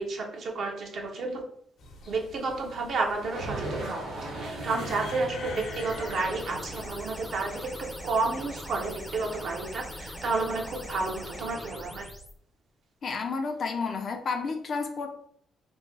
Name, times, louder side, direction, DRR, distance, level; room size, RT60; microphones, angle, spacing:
voice 1, 0.0-1.4 2.1-4.0 4.4-12.1, right 3 dB, 60° right, 1 dB, 0.8 m, -31 dB
sound 1, 1.8-6.9, left 3 dB, 75° left, 0.8 m, -45 dB
sound 2, 3.1-8.8, right 2 dB, 80° right, 1.0 m, -39 dB
sound 3, 5.5-12.3, equal, 5° left, 0.6 m, -41 dB
voice 2, 13.0-15.1, left 4 dB, 50° left, 5 dB, 0.5 m, -31 dB
3.4 x 2.1 x 3.2 m, 0.67 s
cardioid pair, 90°, 0 cm